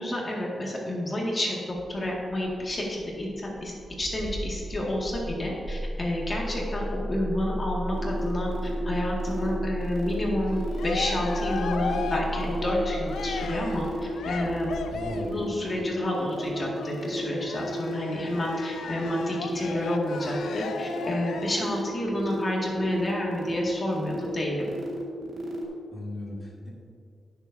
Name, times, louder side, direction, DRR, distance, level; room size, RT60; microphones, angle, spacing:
voice 1, 0.0-1.6 1.9-3.7 4.0-8.5 8.9-13.8 14.3-14.7 15.2-24.6, left 1 dB, 35° left, -3 dB, 2.0 m, -29 dB
Engine starting, 1.7-15.8, equal, 45° right, 1.6 m, -35 dB
sound 1, 7.9-25.6, equal, 80° right, 1.7 m, -36 dB
Cheering, 10.4-15.4 16.1-21.7, left 5 dB, 90° left, 0.5 m, -36 dB
voice 2, 14.9-15.5 25.9-26.7, left 1 dB, 20° left, -4 dB, 2.0 m, -37 dB
17.5 x 7.1 x 2.7 m, 2.3 s
cardioid pair, 80°, 0 cm